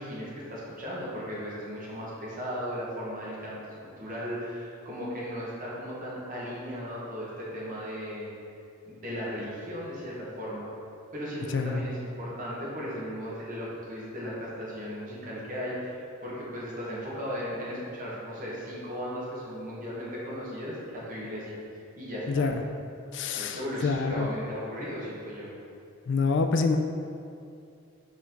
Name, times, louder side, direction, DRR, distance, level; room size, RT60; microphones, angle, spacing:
voice 1, 0.0-3.6 4.0-8.3 8.9-10.7 11.1-21.6 21.9-22.5 23.3-25.5, equal, 40° right, -6 dB, 1.5 m, -36 dB
voice 2, 22.3-22.6 23.1-24.3 26.1-26.8, left 4 dB, 60° left, 6 dB, 0.4 m, -26 dB
5.6 x 4.6 x 3.8 m, 2.5 s
head